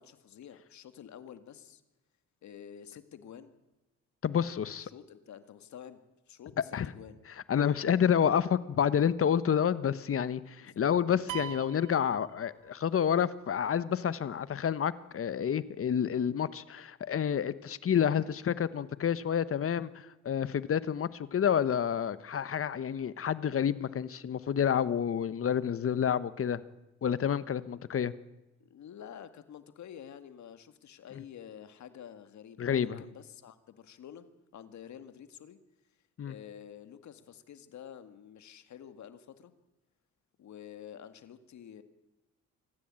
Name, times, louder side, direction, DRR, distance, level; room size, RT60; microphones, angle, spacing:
voice 1, 0.0-1.8 2.4-3.5 4.8-6.0 6.3-7.2 10.6-10.8 28.6-34.2 34.5-35.6 36.3-39.5 40.4-41.8, left 9 dB, 70° left, 11 dB, 2.1 m, -49 dB
voice 2, 4.2-4.9 6.7-6.9 7.5-26.6 27.0-28.1 31.1-31.2 32.6-33.0 36.2-36.3, left 8 dB, 45° left, 16 dB, 1.2 m, -29 dB
sound 1, 11.3-13.0, right 10 dB, 85° right, 1.2 m, -42 dB
25.0 x 15.0 x 9.0 m, 1.0 s
cardioid pair, 90°, 30 cm